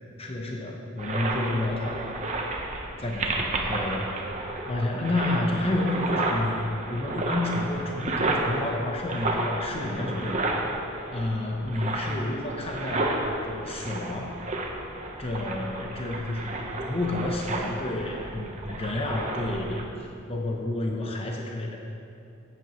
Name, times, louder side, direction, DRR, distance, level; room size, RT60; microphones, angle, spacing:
voice 1, 0.2-2.3 3.0-4.1 4.7-10.5 11.1-14.4 15.2-21.8, left 1 dB, 30° left, 0 dB, 0.8 m, -30 dB
sound 1, 1.0-19.8, right 2 dB, 35° right, 1.0 m, -32 dB
15.0 x 9.0 x 3.1 m, 2.7 s
head